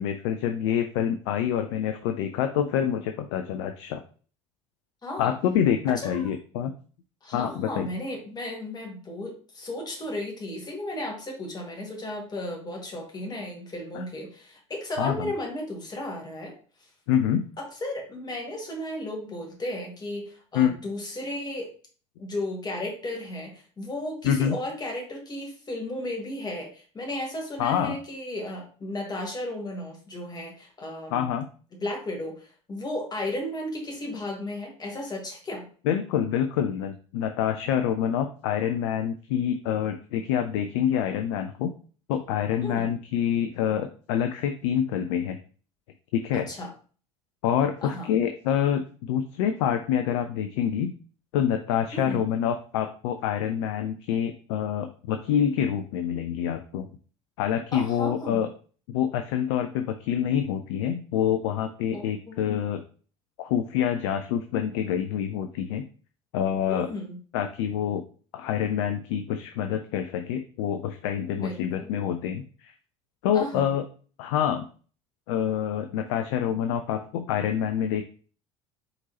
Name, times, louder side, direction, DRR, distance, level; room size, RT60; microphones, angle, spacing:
voice 1, 0.0-4.0 5.2-6.7 7.3-7.9 13.9-14.0 15.0-15.3 17.1-17.5 20.5-20.7 24.2-24.6 27.6-28.0 31.1-31.5 35.8-41.7 42.1-45.4 46.1-46.5 47.4-50.9 51.3-56.9 57.4-58.5 58.9-62.8 63.4-65.8 66.3-66.9 67.3-68.0 68.3-72.7 73.2-73.8 74.2-74.7 75.3-78.0, left 9 dB, 65° left, 7 dB, 0.4 m, -26 dB
voice 2, 5.0-5.4 5.9-6.3 7.2-16.5 17.6-21.7 22.2-31.2 31.7-35.7 42.6-42.9 46.5-46.7 47.8-48.1 51.9-52.3 57.7-58.5 61.9-62.4 66.7-67.2 71.4-71.9 73.3-73.7, left 1 dB, 25° left, 0 dB, 1.9 m, -34 dB
4.4 x 3.8 x 2.8 m, 0.40 s
hypercardioid pair, 65°, 16 cm